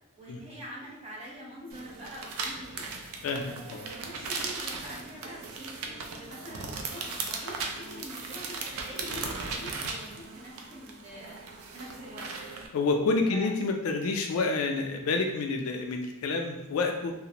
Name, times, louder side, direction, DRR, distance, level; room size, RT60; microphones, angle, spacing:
voice 1, 0.2-2.8 3.4-5.7 6.1-11.4 11.7-12.3 13.3-13.5, equal, 30° right, -5 dB, 0.7 m, -45 dB
sound 1, 1.7-12.7, right 4 dB, 80° right, 0.4 m, -37 dB
voice 2, 3.2-3.9 12.7-17.1, left 3 dB, 80° left, 3 dB, 0.4 m, -28 dB
2.4 x 2.0 x 2.8 m, 0.92 s
head